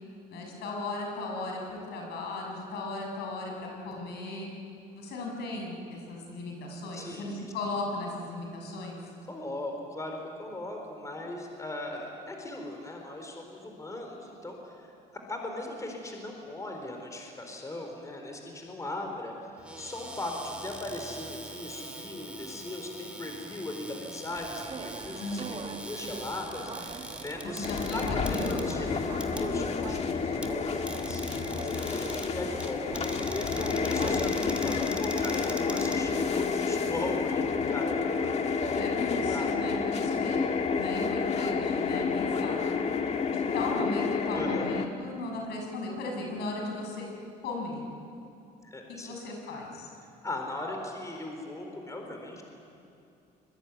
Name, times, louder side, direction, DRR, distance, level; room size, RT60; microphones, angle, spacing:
voice 1, 0.3-4.5 4.9-9.0 25.2-25.4 27.4-28.0 28.3-28.9 38.7-40.5 40.7-42.5 43.5-47.1 47.4-47.9 48.9-49.9, left 2 dB, 75° left, 1 dB, 6.9 m, -36 dB
voice 2, 6.9-7.4 9.3-14.9 15.3-19.3 19.8-40.3 44.3-44.7 48.6-49.2 50.2-52.4, left 2 dB, 20° left, 2 dB, 4.4 m, -38 dB
Cupboard open or close, 19.6-36.6, right 1 dB, 5° right, 2.9 m, -43 dB
sound 1, 24.3-36.5, right 4 dB, 30° right, 1.8 m, -43 dB
sound 2, 27.6-44.9, left 5 dB, 40° left, 1.8 m, -30 dB
25.0 x 22.5 x 9.6 m, 2.6 s
cardioid pair, 110°, 17 cm